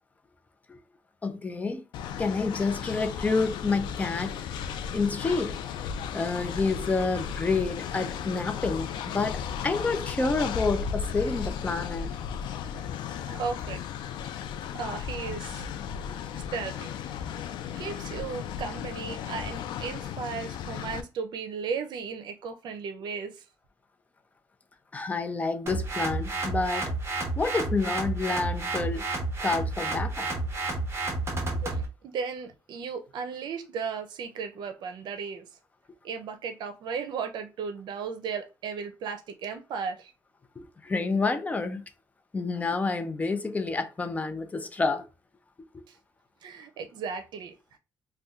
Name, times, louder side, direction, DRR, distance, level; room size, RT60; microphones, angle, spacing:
voice 1, 1.2-1.9 2.2-4.4 4.9-5.6 6.1-12.1 24.9-27.0 27.4-29.1 29.4-30.3 40.6-41.8 42.3-45.1 45.7-45.8, left 3 dB, 20° left, 0.5 m, -29 dB
Train, 1.9-21.0, left 8 dB, 90° left, 0.3 m, -35 dB
voice 2, 13.3-13.8 14.7-15.7 16.5-16.9 17.8-23.4 31.6-35.4 36.0-40.1 45.9-46.0 46.4-47.8, right 5 dB, 75° right, 0.6 m, -35 dB
sound 1, 25.7-31.9, right 2 dB, 35° right, 1.0 m, -31 dB
2.6 x 2.2 x 3.6 m
cardioid pair, 120°, 8 cm